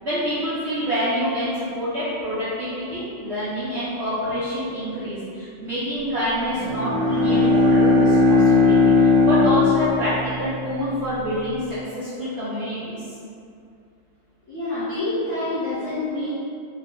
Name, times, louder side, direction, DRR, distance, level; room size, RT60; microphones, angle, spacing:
voice 1, 0.0-13.0, equal, 55° right, -13 dB, 0.7 m, -27 dB
Bowed string instrument, 6.5-11.1, left 3 dB, 85° right, 1.5 m, -18 dB
voice 2, 14.5-16.3, left 2 dB, 55° left, -12 dB, 1.0 m, -27 dB
3.2 x 2.3 x 3.6 m, 2.5 s
omnidirectional pair, 2.0 m